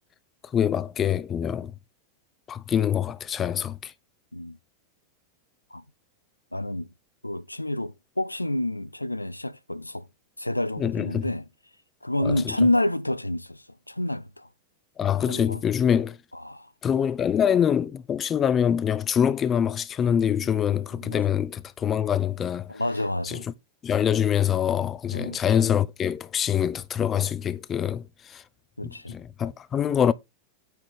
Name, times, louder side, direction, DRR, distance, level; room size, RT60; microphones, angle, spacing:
voice 1, 0.5-1.7 2.5-3.9 10.8-11.3 12.2-12.6 15.0-16.2 16.8-22.7 23.2-23.5 23.8-28.4 28.8-30.1, left 9 dB, 25° left, 0.6 m, -25 dB
voice 2, 6.5-6.9 7.2-10.1 10.4-11.4 12.0-14.5 15.3-15.6 16.3-16.7 21.0-21.2 22.7-23.5 25.1-25.4 28.8-29.2, left 1 dB, 85° left, 0.5 m, -28 dB
9.4 x 3.7 x 4.9 m
figure-of-eight pair, 90°, 0 cm